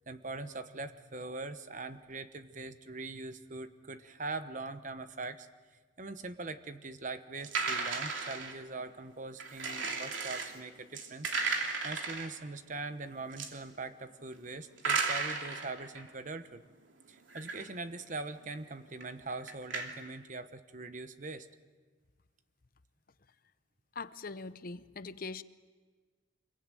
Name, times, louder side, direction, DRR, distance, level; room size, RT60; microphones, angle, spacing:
voice 1, 0.1-5.5 6.0-11.3 11.8-16.6 17.1-21.5, right 3 dB, 40° right, 10 dB, 1.1 m, -42 dB
sound 1, 7.4-8.6 9.4-10.6 11.0-12.3 13.2-13.5 14.8-16.1 17.3-17.7 18.1-18.2 19.0-19.9, right 4 dB, 70° right, 2.9 m, -34 dB
voice 2, 23.9-25.4, left 4 dB, 45° left, 13 dB, 0.7 m, -42 dB
26.0 x 22.5 x 9.1 m, 1.4 s
head